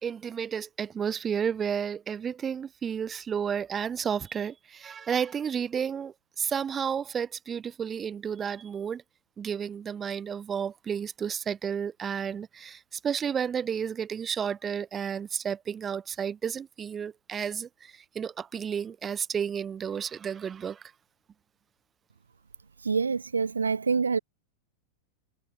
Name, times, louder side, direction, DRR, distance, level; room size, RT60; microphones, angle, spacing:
voice 1, 0.0-9.0 9.4-20.8, right 7 dB, 20° right, 1.3 m, -32 dB
voice 2, 22.8-24.2, right 5 dB, 75° right, 0.4 m, -26 dB
figure-of-eight pair, 90°, 0 cm